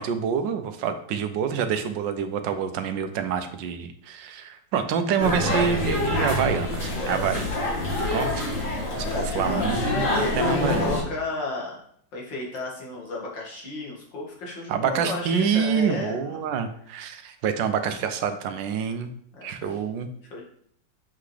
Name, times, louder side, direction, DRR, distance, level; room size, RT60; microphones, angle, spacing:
voice 1, 0.0-7.5 8.1-8.5 9.0-9.1 9.3-10.0 10.4-10.8 14.7-19.1 19.4-20.1, right 7 dB, 85° right, 9 dB, 1.4 m, -27 dB
sound 1, 5.2-11.0, left 1 dB, 45° left, 2.8 m, -26 dB
voice 2, 9.0-11.8 12.1-16.4 19.3-19.8 20.3-20.4, left 2 dB, 90° left, -4 dB, 2.6 m, -33 dB
7.1 x 5.8 x 3.3 m, 0.64 s
omnidirectional pair, 1.9 m